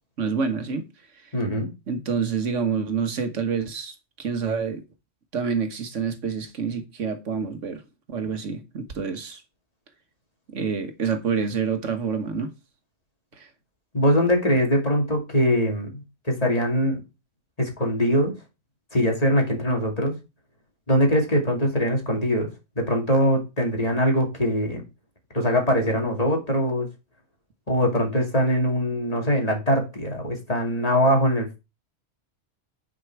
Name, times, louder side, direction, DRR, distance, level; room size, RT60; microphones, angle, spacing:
voice 1, 0.2-0.8 1.9-4.8 5.3-7.8 8.1-9.4 10.5-12.5 13.4-13.5, right 6 dB, 80° right, 1.5 m, -27 dB
voice 2, 1.3-1.7 13.9-17.0 17.6-18.3 18.9-20.1 20.9-22.5 22.8-24.8 25.3-26.9 27.7-31.6, equal, 30° left, 2.5 m, -22 dB
9.8 x 5.2 x 4.6 m
omnidirectional pair, 1.3 m